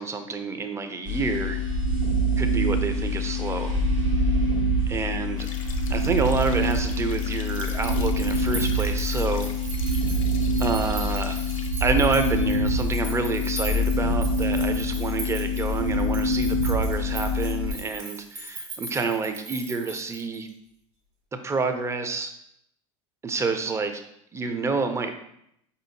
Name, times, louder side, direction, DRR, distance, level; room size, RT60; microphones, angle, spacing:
voice 1, 0.0-1.6 2.4-3.7 4.9-5.5 5.9-9.5 10.6-11.4 11.8-20.5 21.4-22.3 23.2-24.0 24.3-25.1, right 4 dB, 15° right, 7 dB, 0.5 m, -28 dB
sound 1, 1.0-17.7, equal, 85° right, 1.5 m, -25 dB
sound 2, 5.4-11.7, left 6 dB, 80° left, 0.5 m, -43 dB
sound 3, 7.4-20.5, right 2 dB, 65° right, 1.4 m, -40 dB
4.9 x 2.8 x 2.7 m, 0.75 s
hypercardioid pair, 80°, 17 cm